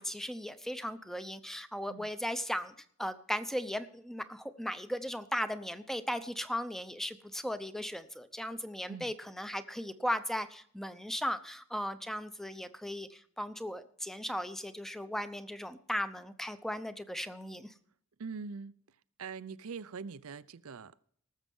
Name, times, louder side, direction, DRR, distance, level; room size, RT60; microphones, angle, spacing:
voice 1, 0.0-2.7 3.0-17.7, equal, ahead, 0.7 m, -37 dB
voice 2, 18.2-18.7 19.2-21.0, right 5 dB, 75° right, 0.6 m, -43 dB
19.0 x 7.3 x 5.4 m
head